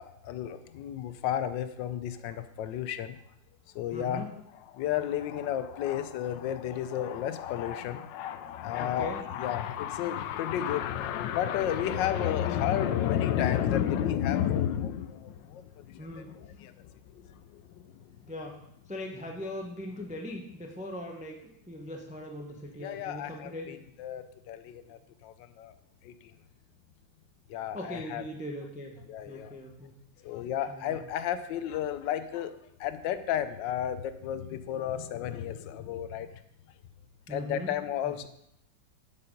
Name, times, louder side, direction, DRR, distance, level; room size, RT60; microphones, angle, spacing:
voice 1, 0.0-3.2 3.7-4.3 4.7-17.8 22.8-25.7 26.0-26.3 27.5-28.2 29.1-29.5 30.2-36.3 37.3-38.3, left 10 dB, 80° left, 12 dB, 1.2 m, -32 dB
voice 2, 3.9-4.3 8.8-9.2 16.0-16.3 18.2-18.6 18.9-23.8 27.7-29.0 29.2-29.9 30.7-31.0 37.3-37.7 38.0-38.1, left 1 dB, 10° right, 2 dB, 0.3 m, -40 dB
8.0 x 5.7 x 5.2 m, 0.78 s
omnidirectional pair, 2.0 m